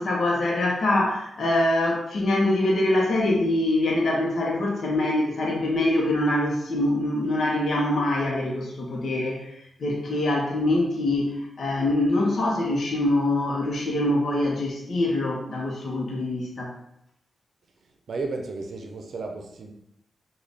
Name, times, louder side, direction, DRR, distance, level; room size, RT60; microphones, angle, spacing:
voice 1, 0.0-9.5 9.8-16.7, left 1 dB, 65° left, -2 dB, 0.8 m, -24 dB
voice 2, 18.1-19.7, right 3 dB, 70° right, 3 dB, 0.5 m, -33 dB
3.7 x 2.3 x 3.4 m, 0.77 s
cardioid pair, 50°, 0 cm